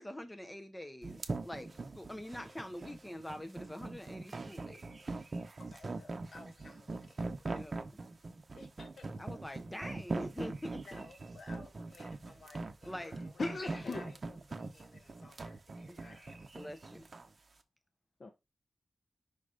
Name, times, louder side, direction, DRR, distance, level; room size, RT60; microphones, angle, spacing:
voice 1, 0.0-1.7 1.9-4.8 7.5-7.8 9.2-10.9 12.9-13.1 15.9-16.0 16.5-17.0, left 1 dB, 10° left, 0.6 m, -44 dB
sound 1, 1.0-17.3, right 3 dB, 35° right, 0.8 m, -42 dB
voice 2, 4.7-5.1 12.9-14.1 16.0-16.3 18.2-18.3, left 2 dB, 45° left, 0.8 m, -41 dB
voice 3, 5.6-7.8 8.5-9.1 10.8-16.5, left 3 dB, 65° left, 1.6 m, -57 dB
5.5 x 4.0 x 4.8 m
wide cardioid pair, 160°, 0 cm